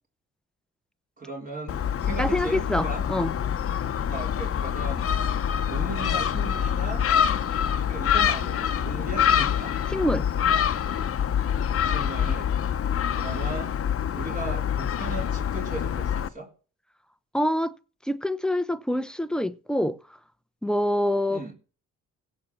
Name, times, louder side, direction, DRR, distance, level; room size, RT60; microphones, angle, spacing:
voice 1, 1.2-3.1 4.1-5.1 5.7-7.1 7.8-9.8 11.8-12.5 13.1-13.8 14.2-16.5 21.3-21.5, right 3 dB, 30° right, 3.4 m, -37 dB
Gull seagull, 1.7-16.3, left 8 dB, 50° left, 1.0 m, -26 dB
voice 2, 2.2-3.3 9.9-10.3 17.3-17.7 18.1-20.0 20.6-21.5, left 1 dB, 5° left, 0.9 m, -26 dB
16.5 x 6.4 x 7.2 m
cardioid pair, 90°, 30 cm